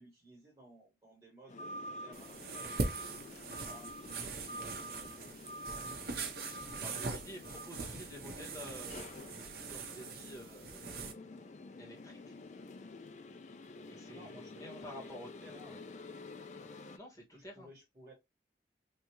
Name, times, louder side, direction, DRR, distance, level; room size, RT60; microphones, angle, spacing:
voice 1, 0.0-5.5 14.1-15.8 17.3-18.1, right 1 dB, 20° right, 1.5 m, -58 dB
sound 1, 1.5-17.0, left 1 dB, 40° left, 0.4 m, -48 dB
sound 2, 2.1-11.1, right 4 dB, 55° right, 0.6 m, -42 dB
voice 2, 6.7-9.4 9.7-10.8 11.8-12.3 13.8-15.3 15.7-15.8 16.9-17.7, left 1 dB, 20° left, 1.5 m, -50 dB
3.4 x 2.7 x 2.9 m
head